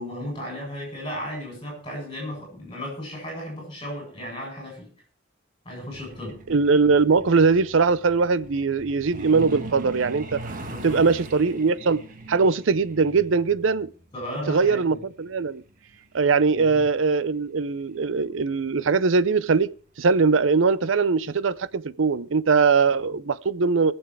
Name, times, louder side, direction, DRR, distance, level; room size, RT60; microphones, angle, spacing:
voice 1, 0.0-4.9 5.6-6.4 10.6-11.0 14.1-15.0 16.5-16.8, equal, 25° left, 7.9 m, -35 dB
Truck, 5.9-18.2 19.5-19.6 20.0-20.2 20.6-20.9 21.2-21.3 21.8-21.9, right 2 dB, 40° right, 1.4 m, -41 dB
voice 2, 6.5-10.4 10.8-12.0 12.3-13.9 14.5-15.6 16.1-19.7 20.0-23.9, right 4 dB, 80° right, 0.6 m, -21 dB
21.0 x 7.2 x 4.8 m
head